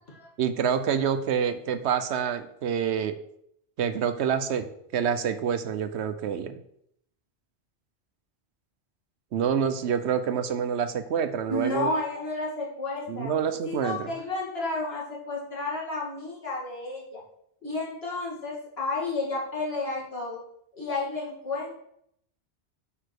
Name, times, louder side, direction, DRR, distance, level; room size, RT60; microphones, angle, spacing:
voice 1, 0.4-3.2 3.8-4.7 4.9-6.6 9.3-11.9 13.1-14.1, right 7 dB, 85° right, 10 dB, 1.0 m, -27 dB
voice 2, 11.5-13.3 13.7-17.2 17.6-20.4 20.7-21.8, left 2 dB, 65° left, -5 dB, 2.7 m, -31 dB
8.5 x 4.9 x 4.7 m, 0.73 s
omnidirectional pair, 1.1 m